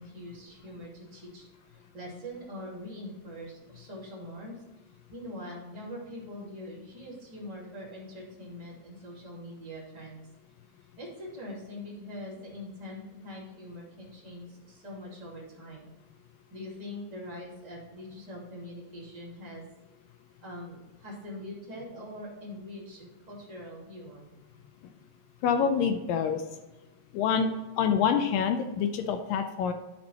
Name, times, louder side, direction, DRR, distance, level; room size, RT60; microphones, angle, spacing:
voice 1, 0.0-4.6 5.1-10.2 11.0-15.9 16.5-19.6 20.4-24.3, left 1 dB, 15° right, -6 dB, 1.8 m, -43 dB
voice 2, 25.4-26.4 27.1-27.5 27.8-29.7, left 7 dB, 80° left, 7 dB, 2.1 m, -26 dB
11.5 x 4.4 x 4.3 m, 1.1 s
omnidirectional pair, 4.3 m